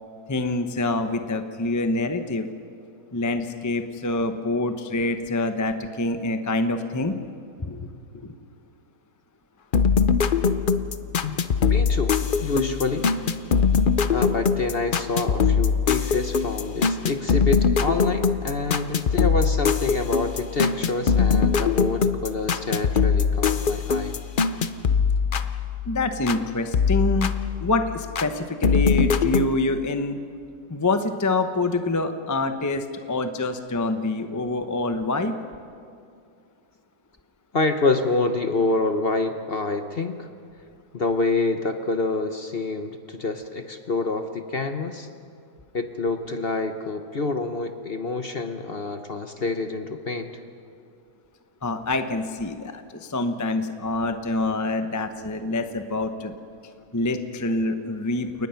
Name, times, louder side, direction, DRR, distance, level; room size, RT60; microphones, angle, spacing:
voice 1, 0.3-2.5 3.1-7.1 7.6-7.8 8.1-8.3 25.9-27.3 27.6-30.2 30.7-35.4 51.6-56.3 56.9-58.5, left 2 dB, 15° left, 7 dB, 0.6 m, -26 dB
sound 1, 9.7-26.4 26.7-28.3 28.6-29.5, left 6 dB, 70° left, 0.5 m, -22 dB
voice 2, 11.7-13.1 14.1-24.2 37.5-40.3 40.9-45.1 45.7-50.3, left 3 dB, 40° left, 7 dB, 1.0 m, -27 dB
30.0 x 19.5 x 5.8 m, 2.4 s
omnidirectional pair, 1.9 m